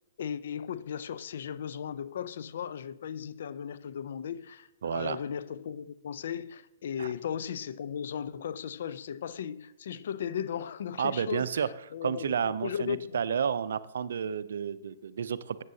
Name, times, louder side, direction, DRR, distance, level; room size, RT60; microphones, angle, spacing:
voice 1, 0.2-13.2, left 8 dB, 65° left, 0.5 m, -36 dB
voice 2, 4.8-5.2 7.0-7.1 11.0-11.7 12.0-15.6, right 7 dB, 70° right, 0.5 m, -31 dB
13.5 x 8.1 x 2.8 m
hypercardioid pair, 125°, 0 cm